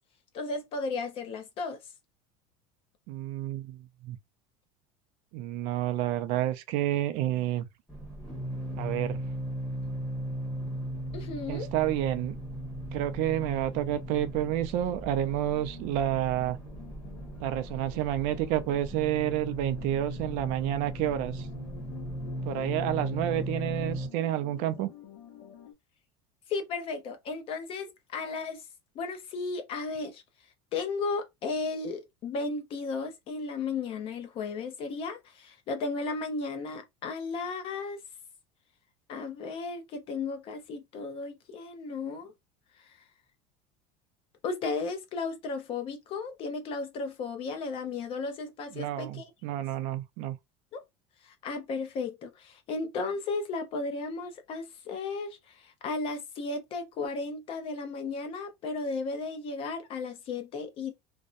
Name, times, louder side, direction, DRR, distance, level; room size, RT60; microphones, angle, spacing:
voice 1, 0.3-1.8 11.1-11.7 26.5-28.6 28.9-30.2 30.7-38.0 39.1-42.3 42.8-42.9 44.4-49.2 50.7-50.8 51.2-60.9, left 4 dB, 35° left, 0.6 m, -34 dB
voice 2, 3.1-4.2 5.3-7.7 8.8-9.2 11.5-12.4 12.9-16.6 17.4-21.5 22.4-24.9 48.7-50.4, right 12 dB, 55° right, 0.4 m, -29 dB
sound 1, 7.9-24.1, right 1 dB, 5° left, 1.0 m, -37 dB
sound 2, 15.3-25.7, left 9 dB, 70° left, 0.9 m, -50 dB
2.6 x 2.1 x 2.4 m
cardioid pair, 155°, 16 cm